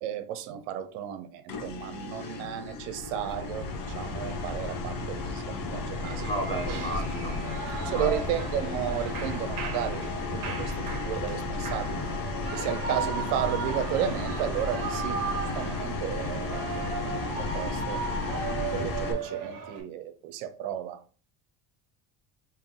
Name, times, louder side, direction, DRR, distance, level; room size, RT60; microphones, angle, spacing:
voice 1, 0.0-6.8 7.8-12.1 12.5-15.2 15.6-18.0 18.5-21.0, right 10 dB, 80° right, 0.7 m, -34 dB
sound 1, 1.5-19.1, left 3 dB, 45° left, 0.9 m, -33 dB
Shout / Cheering, 5.9-19.8, right 5 dB, 45° right, 1.1 m, -36 dB
voice 2, 6.2-8.1, equal, 10° left, 0.9 m, -34 dB
3.6 x 2.8 x 3.6 m
supercardioid pair, 105°, 47 cm